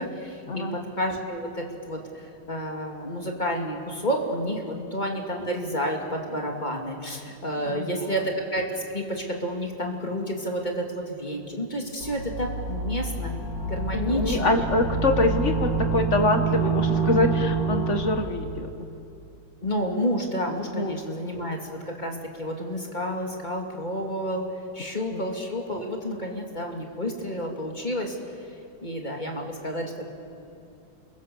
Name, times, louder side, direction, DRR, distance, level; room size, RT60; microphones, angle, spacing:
voice 1, 0.0-13.4 13.6-14.6 19.6-24.4 24.7-28.2 28.8-30.0, equal, 20° left, 1 dB, 2.5 m, -30 dB
voice 2, 7.6-8.1 14.1-18.7 20.7-20.9 21.2-21.3 25.1-25.2, left 2 dB, 40° left, 6 dB, 1.7 m, -25 dB
sound 1, 12.0-18.3, right 4 dB, 65° right, 3.8 m, -27 dB
28.5 x 22.5 x 7.0 m, 2.5 s
omnidirectional pair, 2.2 m